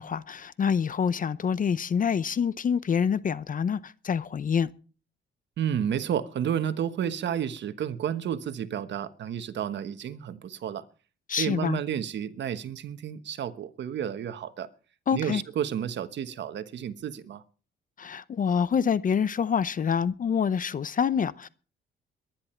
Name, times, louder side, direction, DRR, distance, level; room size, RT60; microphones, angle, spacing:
voice 1, 0.0-4.7 11.3-11.8 15.1-15.4 18.0-21.5, left 7 dB, 40° left, 0.7 m, -26 dB
voice 2, 5.6-10.9 11.4-14.7 15.1-17.4, right 9 dB, 65° right, 1.2 m, -31 dB
22.0 x 10.5 x 4.5 m
cardioid pair, 90°, 20 cm